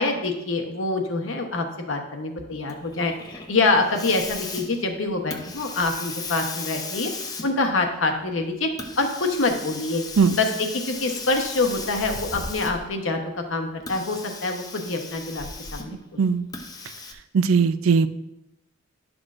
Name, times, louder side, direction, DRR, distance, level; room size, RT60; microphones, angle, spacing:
voice 1, 0.0-7.1 7.4-10.0 10.3-10.5 10.9-13.2 13.5-15.5 15.7-16.2, left 3 dB, 70° left, 4 dB, 1.0 m, -25 dB
Hiss, 2.7-13.0 13.8-16.0 16.5-17.1, left 3 dB, 20° left, 0.6 m, -36 dB
voice 2, 17.3-18.1, right 5 dB, 80° right, 12 dB, 0.4 m, -19 dB
11.0 x 6.2 x 2.5 m, 0.91 s
head